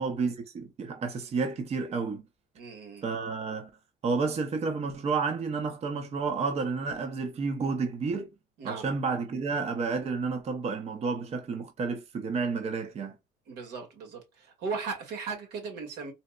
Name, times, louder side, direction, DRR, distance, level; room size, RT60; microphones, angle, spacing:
voice 1, 0.0-2.2 3.0-3.7 4.0-8.3 8.6-13.2, right 4 dB, 40° right, 0.7 m, -31 dB
voice 2, 2.6-3.0 8.6-8.9 13.5-16.1, right 4 dB, 85° right, 1.6 m, -37 dB
4.1 x 2.0 x 2.3 m
cardioid pair, 110°, 17 cm